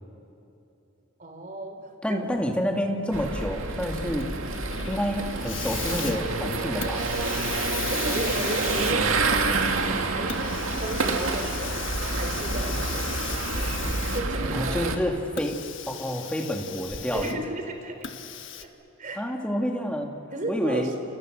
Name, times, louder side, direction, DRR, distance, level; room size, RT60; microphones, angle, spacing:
voice 1, 1.2-2.2 7.9-9.7 10.0-11.8 12.1-13.4 14.1-14.9 17.1-18.3 18.6-18.7 19.0-19.3 20.3-20.9, right 1 dB, 40° right, 5 dB, 3.6 m, -34 dB
voice 2, 2.0-4.3 4.9-7.1 14.5-15.6 15.9-17.4 19.2-20.1 20.5-20.9, equal, 5° left, 2 dB, 2.5 m, -28 dB
sound 1, 3.1-15.0, right 3 dB, 85° right, 2.2 m, -28 dB
Hiss, 4.2-14.5 15.3-17.5 18.0-18.6, left 8 dB, 65° left, 1.4 m, -37 dB
30.0 x 29.5 x 6.6 m, 2.9 s
head